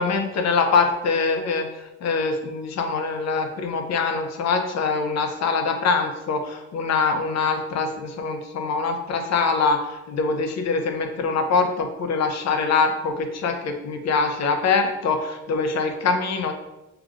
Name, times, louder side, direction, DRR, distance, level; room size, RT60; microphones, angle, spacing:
voice 1, 0.0-16.5, left 4 dB, 60° left, 5 dB, 0.7 m, -24 dB
4.8 x 2.9 x 2.5 m, 0.97 s
cardioid pair, 90°, 30 cm